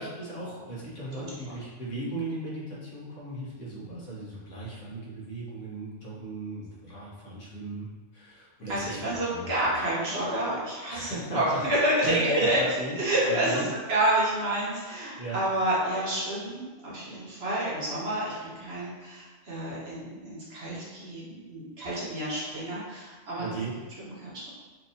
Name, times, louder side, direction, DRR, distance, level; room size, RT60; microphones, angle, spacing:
voice 1, 0.0-7.9 8.1-9.5 10.9-11.6 12.0-13.0 13.2-13.7 15.2-15.4 23.3-23.7, right 2 dB, 65° left, -6 dB, 1.3 m, -37 dB
voice 2, 8.7-12.6 13.0-13.6 13.9-23.6 24.0-24.5, right 1 dB, 50° right, -6 dB, 1.2 m, -29 dB
4.5 x 2.6 x 2.6 m, 1.3 s
omnidirectional pair, 1.4 m